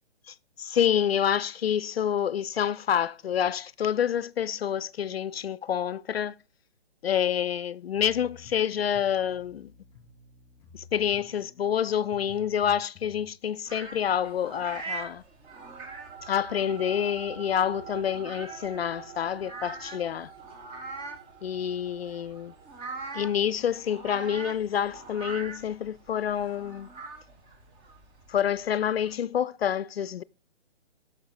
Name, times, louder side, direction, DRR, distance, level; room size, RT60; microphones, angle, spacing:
voice 1, 0.3-6.3 7.0-9.7 10.7-15.2 16.2-20.3 21.4-22.5 23.1-26.9 28.3-30.2, left 9 dB, 65° left, 0.5 m, -28 dB
sound 1, 7.9-13.3, left 4 dB, 10° left, 3.5 m, -52 dB
sound 2, 13.7-29.1, right 4 dB, 15° right, 1.2 m, -43 dB
sound 3, 15.4-26.2, right 7 dB, 75° right, 2.2 m, -47 dB
14.5 x 6.5 x 4.0 m
figure-of-eight pair, 140°, 33 cm